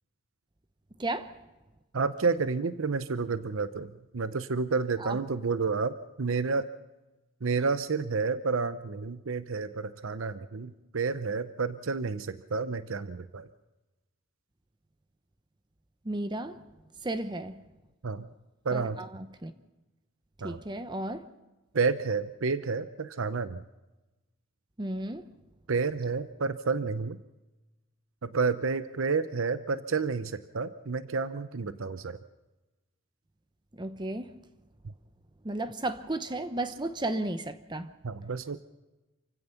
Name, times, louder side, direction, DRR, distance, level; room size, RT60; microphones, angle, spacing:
voice 1, 1.0-1.3 5.0-5.2 16.0-16.6 17.0-17.6 18.7-19.5 20.4-21.3 24.8-25.3 33.8-34.3 35.4-37.9, right 2 dB, 20° right, 0.9 m, -34 dB
voice 2, 1.9-6.7 7.4-13.5 18.0-18.3 18.6-19.0 20.4-20.6 21.7-23.6 25.7-27.2 28.2-32.2 34.8-34.9 38.0-38.6, right 4 dB, 75° right, 0.7 m, -30 dB
28.5 x 16.0 x 5.8 m
head